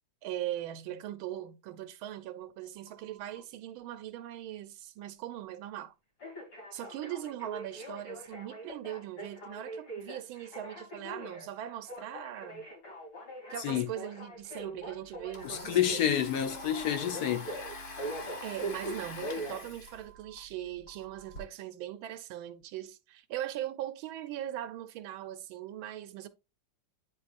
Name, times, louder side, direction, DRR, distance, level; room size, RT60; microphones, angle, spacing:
voice 1, 0.2-5.9 6.7-12.7 13.5-16.1 18.4-26.3, right 12 dB, 80° right, 1.4 m, -40 dB
Telephone, 2.9-3.4 6.2-20.4 20.9-21.4, right 1 dB, 80° left, 3.7 m, -43 dB
Domestic sounds home sounds, 14.4-14.5 14.8-21.4, left 2 dB, 45° left, 0.7 m, -45 dB
voice 2, 15.4-17.5, left 10 dB, 60° left, 1.1 m, -29 dB
9.6 x 4.2 x 2.5 m
omnidirectional pair, 2.3 m